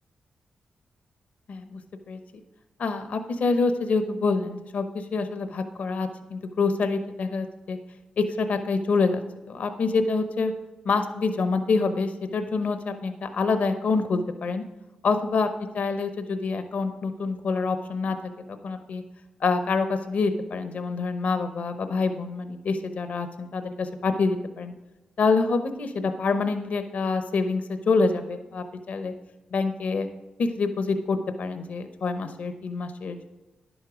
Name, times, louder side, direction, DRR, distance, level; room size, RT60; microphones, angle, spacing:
voice 1, 1.5-1.8 2.1-2.2 2.8-7.8 8.2-9.2 9.5-10.5 10.8-14.6 15.0-15.5 15.7-18.2 18.6-19.0 19.4-24.7 25.2-29.1 29.5-30.1 30.4-33.3, left 4 dB, 70° left, 8 dB, 0.8 m, -26 dB
10.5 x 8.1 x 5.0 m, 1.1 s
cardioid pair, 55°, 3 cm